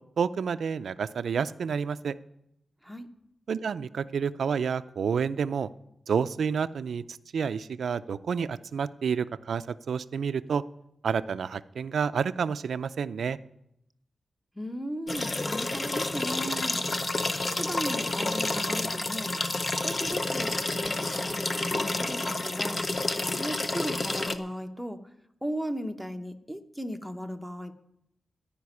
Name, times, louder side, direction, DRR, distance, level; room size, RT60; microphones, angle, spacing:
voice 1, 0.2-2.2 3.5-5.7 6.1-10.6 11.0-13.4, right 6 dB, 85° right, 14 dB, 0.4 m, -29 dB
voice 2, 14.6-16.8 17.5-19.3 19.8-22.8 23.4-25.0 25.4-27.7, equal, ahead, 7 dB, 0.9 m, -36 dB
sound 1, 15.1-24.4, left 2 dB, 35° left, 0.7 m, -29 dB
15.0 x 5.2 x 9.6 m, 0.81 s
wide cardioid pair, 125°, 0 cm